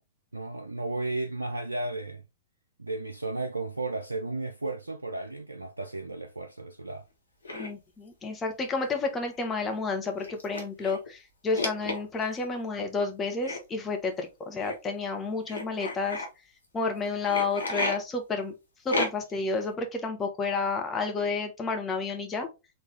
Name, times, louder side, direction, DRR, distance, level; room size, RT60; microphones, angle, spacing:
voice 1, 0.3-2.2 2.8-7.0, right 2 dB, 90° right, 0.3 m, -34 dB
sound 1, 7.4-7.7 8.9-9.0 9.3-9.4 10.2-11.1 11.5-12.4 13.4-13.6 14.6-14.7 15.5-16.3 17.2-18.0 18.9-19.4, left 2 dB, 80° left, 1.3 m, -32 dB
voice 2, 7.5-16.2 16.7-18.5 18.8-22.5, left 4 dB, 20° left, 1.3 m, -30 dB
4.2 x 3.5 x 3.3 m
figure-of-eight pair, 105°, 0 cm